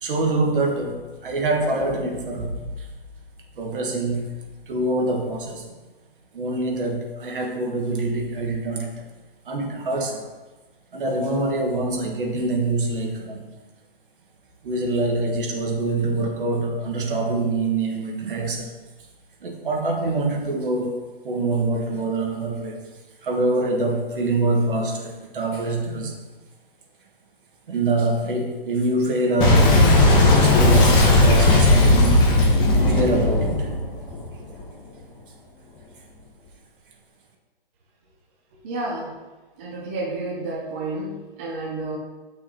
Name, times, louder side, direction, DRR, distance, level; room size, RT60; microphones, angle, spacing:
voice 1, 0.0-2.9 3.6-4.3 4.7-5.7 6.3-8.9 9.5-10.2 10.9-13.4 14.6-18.7 19.4-22.8 23.2-26.2 27.7-29.8 30.4-32.2 32.5-33.7, right 2 dB, 60° right, 0 dB, 1.7 m, -25 dB
Boom, 29.4-34.6, left 2 dB, 15° left, 0.9 m, -16 dB
voice 2, 38.6-39.1 39.6-42.0, right 2 dB, 15° right, -2 dB, 0.4 m, -30 dB
10.0 x 6.1 x 3.0 m, 1.2 s
hypercardioid pair, 155°, 30 cm